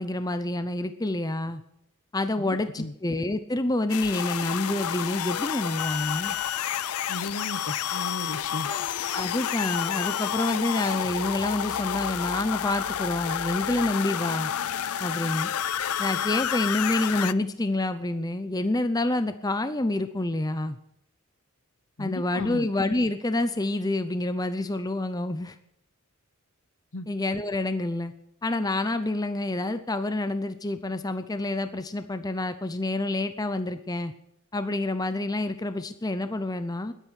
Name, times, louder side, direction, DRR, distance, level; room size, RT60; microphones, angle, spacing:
voice 1, 0.0-1.6 2.1-6.4 8.6-8.8 9.1-14.5 15.0-15.5 16.0-20.8 22.0-25.5 27.1-28.1 28.4-34.1 34.5-36.9, left 2 dB, 15° left, 10 dB, 0.6 m, -28 dB
voice 2, 2.4-2.9 7.1-8.7 22.0-22.7 26.9-27.1, left 2 dB, 60° left, 13 dB, 1.0 m, -35 dB
sound 1, 3.9-17.3, left 9 dB, 90° left, 0.5 m, -30 dB
21.0 x 9.1 x 6.4 m, 0.77 s
head